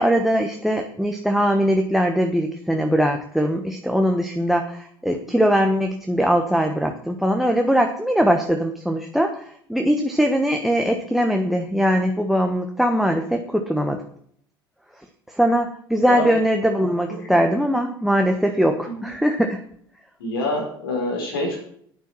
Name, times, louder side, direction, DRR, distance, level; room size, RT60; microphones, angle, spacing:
voice 1, 0.0-9.4 9.7-14.0 15.4-19.6, equal, ahead, 5 dB, 1.3 m, -21 dB
voice 2, 20.2-21.6, left 1 dB, 75° left, 0 dB, 4.6 m, -27 dB
9.7 x 8.9 x 6.2 m, 0.63 s
figure-of-eight pair, 65°, 12 cm